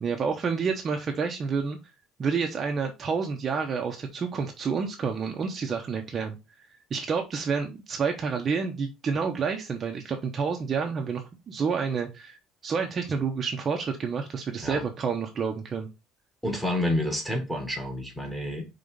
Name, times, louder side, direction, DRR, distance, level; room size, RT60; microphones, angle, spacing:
voice 1, 0.0-1.8 2.2-6.4 6.9-12.4 12.6-15.9, right 5 dB, 25° right, 3 dB, 0.8 m, -29 dB
voice 2, 16.4-18.6, left 1 dB, 5° left, 3 dB, 1.6 m, -29 dB
5.5 x 3.8 x 5.2 m, 0.26 s
cardioid pair, 165°, 0 cm